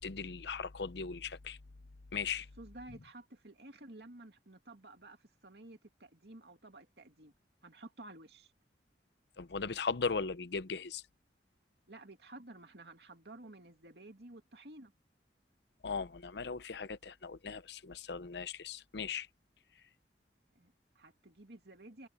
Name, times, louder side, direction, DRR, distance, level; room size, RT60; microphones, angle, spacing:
voice 1, 0.0-1.6 2.1-2.5 9.4-11.0 15.8-19.3, left 5 dB, 70° left, 0.7 m, -38 dB
voice 2, 2.6-7.3 7.6-8.5 11.9-14.9 20.5-22.1, right 2 dB, 65° right, 2.6 m, -53 dB
head